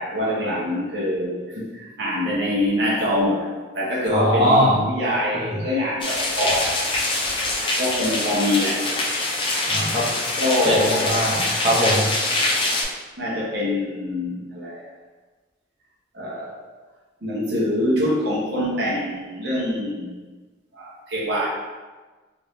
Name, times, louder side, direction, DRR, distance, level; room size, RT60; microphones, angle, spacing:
voice 1, 0.0-6.8 7.8-8.8 10.4-11.4 13.2-14.9 16.1-16.6 17.2-20.2 20.7-21.5, left 1 dB, 65° right, -5 dB, 0.9 m, -24 dB
voice 2, 4.1-4.8 5.3-5.5 9.7-10.0 10.7-12.1, equal, 25° right, -8 dB, 0.7 m, -21 dB
sound 1, 6.0-12.8, left 2 dB, 25° left, 0.4 m, -24 dB
3.5 x 2.5 x 3.1 m, 1.3 s
head